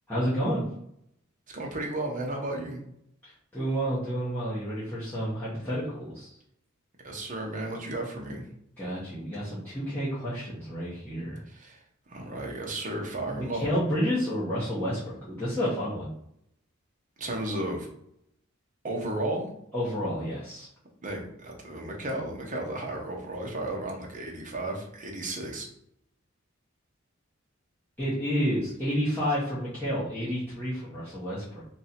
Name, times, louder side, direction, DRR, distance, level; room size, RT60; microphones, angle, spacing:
voice 1, 0.1-0.6 3.2-6.3 8.8-11.4 13.4-16.1 19.7-20.7 28.0-31.6, equal, 10° left, -11 dB, 1.0 m, -30 dB
voice 2, 1.5-2.8 7.0-8.4 11.5-13.6 17.2-17.9 18.8-19.5 21.0-25.7, right 1 dB, 40° right, 0 dB, 0.8 m, -34 dB
3.2 x 2.7 x 4.2 m, 0.73 s
head